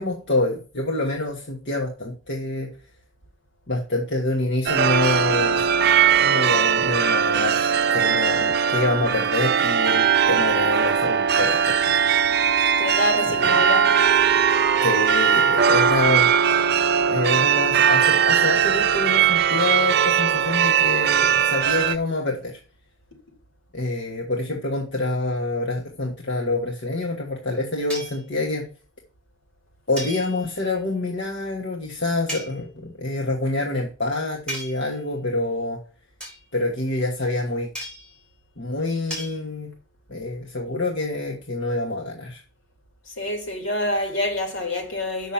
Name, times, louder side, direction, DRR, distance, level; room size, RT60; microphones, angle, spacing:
voice 1, 0.0-2.7 3.7-5.6 6.2-12.0 13.3-13.5 14.8-16.3 17.0-22.6 23.7-28.7 29.9-35.8 36.5-37.7 38.6-39.7 40.1-42.4, left 2 dB, 60° left, 1.4 m, -26 dB
sound 1, 4.7-22.0, right 7 dB, 55° right, 0.5 m, -19 dB
voice 2, 12.8-14.0 43.1-45.3, left 1 dB, 80° left, 3.3 m, -26 dB
sound 2, 27.9-28.3 30.0-30.7 32.3-32.6 34.5-35.0 36.2-36.4 37.7-38.2 39.1-39.3, equal, 5° left, 4.5 m, -35 dB
7.0 x 6.2 x 7.2 m
head